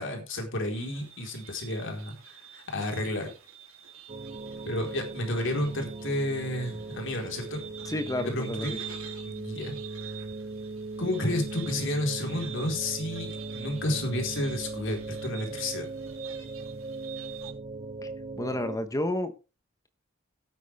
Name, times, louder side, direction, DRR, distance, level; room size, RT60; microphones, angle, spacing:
voice 1, 0.0-3.3 4.7-7.6 8.2-8.7 9.2-9.7 10.0-10.2 11.0-15.9, left 1 dB, 65° left, 3 dB, 4.3 m, -31 dB
sound 1, 0.7-17.5, right 9 dB, 80° right, 3.4 m, -47 dB
sound 2, 4.1-18.8, right 3 dB, 30° right, 0.6 m, -39 dB
voice 2, 7.8-8.8 18.0-18.1 18.4-19.3, left 1 dB, 15° left, 9 dB, 1.0 m, -30 dB
17.5 x 8.4 x 3.5 m, 0.31 s
head